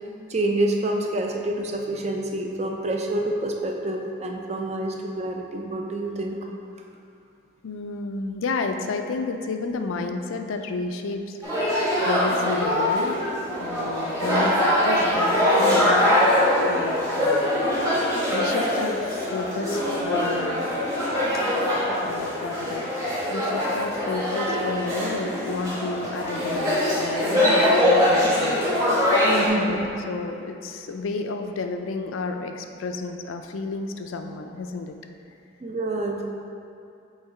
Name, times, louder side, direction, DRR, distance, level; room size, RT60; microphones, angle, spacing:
voice 1, 0.3-6.3 29.2-29.9 35.6-36.3, right 1 dB, 35° right, 1 dB, 0.5 m, -27 dB
voice 2, 7.6-13.2 13.6-17.7 18.3-20.7 21.9-28.7 29.4-35.0, left 3 dB, 85° left, 6 dB, 0.4 m, -31 dB
sound 1, 11.4-29.5, left 1 dB, 15° right, 1.2 m, -23 dB
6.4 x 3.2 x 4.8 m, 2.6 s
head